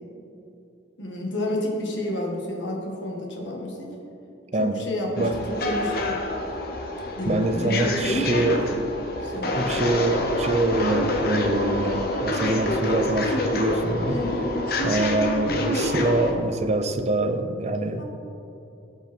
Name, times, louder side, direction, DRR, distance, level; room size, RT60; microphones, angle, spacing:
voice 1, 1.0-3.9 4.6-5.3 5.6-6.2 7.2-8.8 9.2-9.7 14.1-14.5 18.0-18.1, left 1 dB, 80° left, -1 dB, 1.9 m, -30 dB
sound 1, 5.2-16.3, left 1 dB, 55° left, 1.1 m, -27 dB
voice 2, 7.3-8.7 9.5-14.2 14.8-18.0, right 2 dB, 35° right, 8 dB, 0.6 m, -25 dB
17.0 x 5.9 x 4.4 m, 2.8 s
head